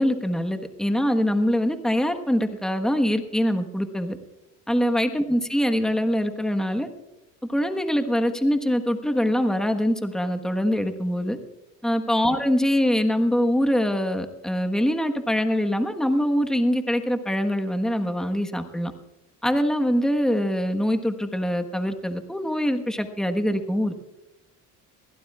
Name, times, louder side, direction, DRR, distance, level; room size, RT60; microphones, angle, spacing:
voice 1, 0.0-4.2 4.7-6.9 7.5-11.4 11.8-18.9 19.4-23.9, equal, ahead, 6 dB, 1.3 m, -23 dB
22.0 x 17.0 x 2.4 m, 0.97 s
supercardioid pair, 85°, 38 cm